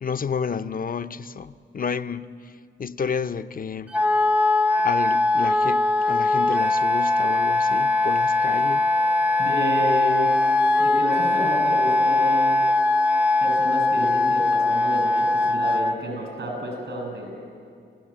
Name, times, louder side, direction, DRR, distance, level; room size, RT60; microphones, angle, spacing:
voice 1, 0.0-3.9 4.8-8.8, left 6 dB, 45° left, 0.7 m, -30 dB
Wind instrument woodwind instrument, 3.9-16.0, left 2 dB, 5° right, 0.6 m, -21 dB
voice 2, 9.4-10.3 10.8-12.6 13.4-17.3, equal, 70° right, 7.5 m, -30 dB
26.0 x 16.0 x 8.8 m
cardioid pair, 75°, 20 cm